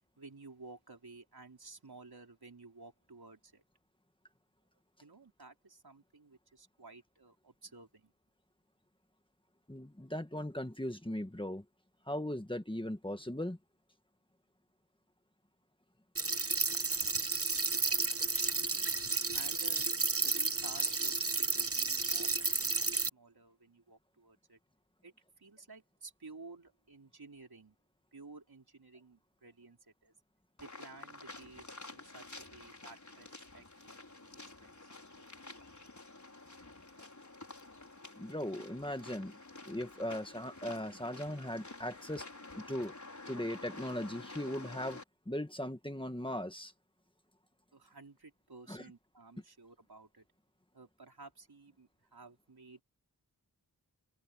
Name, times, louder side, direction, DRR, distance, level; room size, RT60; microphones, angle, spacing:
voice 1, 0.2-3.6 5.0-8.1 19.3-19.9 20.1-24.6 25.0-27.8 28.1-30.1 30.6-35.2 47.7-50.2 50.7-52.8, right 3 dB, 75° right, 4.5 m, -54 dB
voice 2, 9.7-11.6 12.1-13.6 38.2-39.4 39.7-42.3 42.6-42.9 43.3-45.0 45.3-46.7 48.7-48.8, left 1 dB, 15° left, 1.7 m, -38 dB
sound 1, 16.2-23.1, right 3 dB, 35° right, 1.1 m, -32 dB
sound 2, 30.6-45.0, left 2 dB, 50° left, 5.4 m, -50 dB
open air
wide cardioid pair, 65°, 37 cm